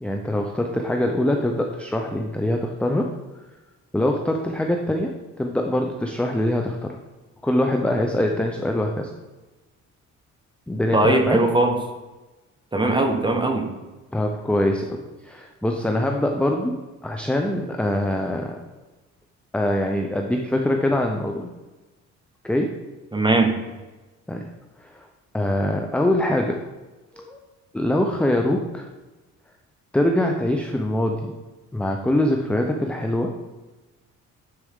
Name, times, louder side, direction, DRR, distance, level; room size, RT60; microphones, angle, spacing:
voice 1, 0.0-3.1 3.9-7.0 7.4-9.1 10.7-11.4 14.1-16.8 17.0-18.6 19.5-21.5 22.4-22.8 24.3-24.5 24.8-25.1 25.3-26.6 27.1-27.4 27.7-28.9 29.9-31.3 31.7-33.4, left 1 dB, 5° left, 2 dB, 0.6 m, -23 dB
voice 2, 10.9-11.8 12.7-13.7 23.1-23.6, right 2 dB, 15° right, 3 dB, 1.2 m, -19 dB
9.9 x 4.4 x 3.7 m, 1.1 s
cardioid pair, 90°, 30 cm